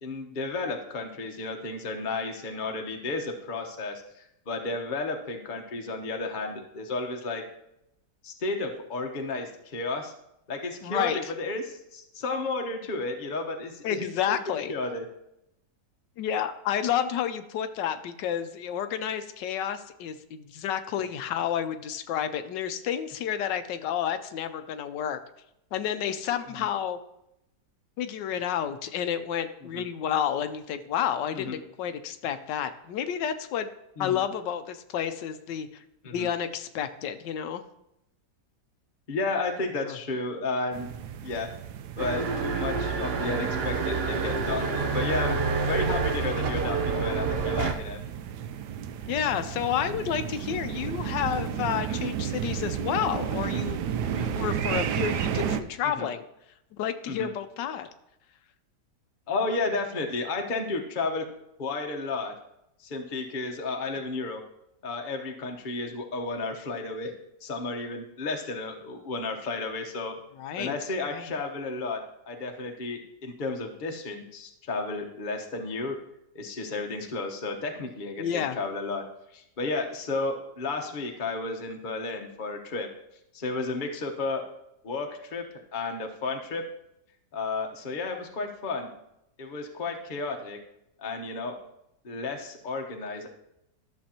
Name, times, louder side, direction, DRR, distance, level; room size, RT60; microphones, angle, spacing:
voice 1, 0.0-7.4 8.2-10.1 10.5-14.4 14.7-15.0 26.5-26.6 29.7-29.8 31.3-31.5 34.0-34.2 36.0-36.3 39.1-40.9 41.2-41.5 42.0-45.4 45.6-48.0 51.8-52.0 54.0-54.3 56.0-56.1 57.1-57.3 59.3-61.2 61.6-62.3 62.8-64.4 64.8-67.1 67.4-70.1 70.6-72.0 72.3-76.0 76.3-79.0 79.3-82.9 83.3-84.4 84.8-85.4 85.7-86.6 87.3-88.9 89.4-90.6 91.0-91.5 92.0-93.3, left 3 dB, 35° left, 3 dB, 1.0 m, -32 dB
voice 2, 10.8-11.2 13.8-14.7 16.2-25.2 25.7-27.0 28.0-33.7 34.0-37.6 39.8-40.0 43.1-43.3 49.1-56.2 56.8-57.9 70.4-70.8 71.1-71.3 78.2-78.6, left 9 dB, 85° left, 9 dB, 1.3 m, -30 dB
sound 1, 40.7-55.6, right 9 dB, 75° right, 1.2 m, -33 dB
sound 2, 42.0-47.7, right 4 dB, 60° right, 0.6 m, -28 dB
12.5 x 6.9 x 2.9 m, 0.82 s
omnidirectional pair, 1.9 m